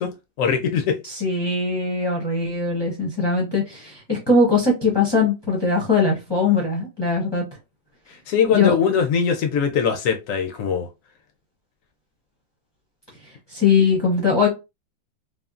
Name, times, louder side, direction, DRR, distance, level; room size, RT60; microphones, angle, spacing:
voice 1, 0.0-1.0 8.3-10.9, left 6 dB, 70° left, 0.8 m, -21 dB
voice 2, 1.0-7.4 8.5-8.7 13.5-14.5, left 4 dB, 30° left, 0.4 m, -20 dB
3.5 x 2.1 x 2.3 m
omnidirectional pair, 1.8 m